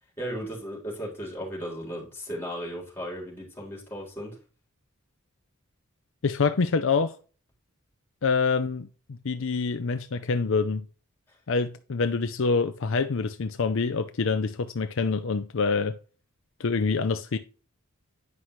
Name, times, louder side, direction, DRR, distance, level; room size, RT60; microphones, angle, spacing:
voice 1, 0.2-4.4, equal, 10° left, 3.7 m, -36 dB
voice 2, 6.2-7.1 8.2-10.8 11.5-16.0 16.6-17.4, left 4 dB, 60° left, 0.6 m, -26 dB
9.7 x 5.8 x 3.1 m
head